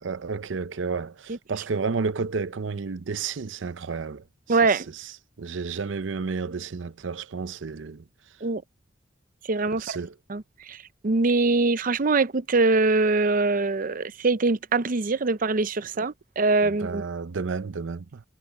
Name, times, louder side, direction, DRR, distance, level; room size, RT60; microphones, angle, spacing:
voice 1, 0.0-8.0 9.7-10.1 16.6-18.2, right 4 dB, 85° right, 0.6 m, -32 dB
voice 2, 4.5-4.9 8.4-8.6 9.5-9.9 10.3-10.4 10.7-10.8 11.0-17.0, right 3 dB, 45° right, 0.6 m, -23 dB
head